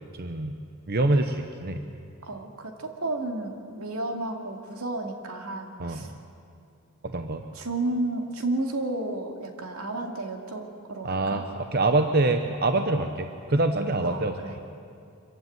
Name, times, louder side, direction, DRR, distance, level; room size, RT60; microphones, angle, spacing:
voice 1, 0.2-0.6 0.9-1.8 5.8-6.1 7.0-7.4 11.0-11.5 11.7-14.4, right 2 dB, 45° right, 6 dB, 0.9 m, -25 dB
voice 2, 2.2-6.1 7.5-11.4 14.0-14.6, right 2 dB, 80° right, 3 dB, 2.5 m, -32 dB
24.5 x 15.5 x 9.4 m, 2.5 s
head